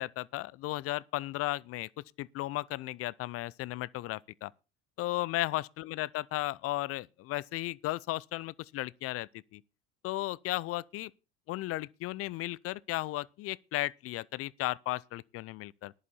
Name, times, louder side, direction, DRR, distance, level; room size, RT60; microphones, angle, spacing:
voice 1, 0.0-1.9 2.2-4.5 5.0-9.6 10.0-11.1 11.5-15.9, left 17 dB, 45° left, 0.6 m, -35 dB
14.0 x 11.0 x 4.2 m
hypercardioid pair, 75°, 31 cm